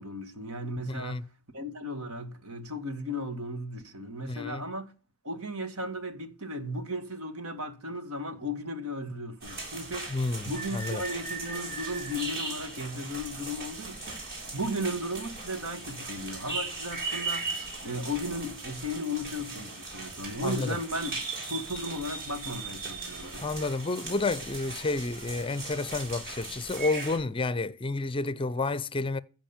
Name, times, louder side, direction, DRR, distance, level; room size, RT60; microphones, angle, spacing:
voice 1, 0.0-4.9 5.2-14.2 14.5-17.6 17.8-23.5, equal, 70° right, 1.9 m, -35 dB
voice 2, 0.9-1.2 4.3-4.6 10.1-11.0 20.4-20.8 23.4-29.2, left 3 dB, 25° left, 0.5 m, -30 dB
sound 1, 9.4-27.2, right 3 dB, 45° right, 7.4 m, -38 dB
15.0 x 5.3 x 7.2 m
head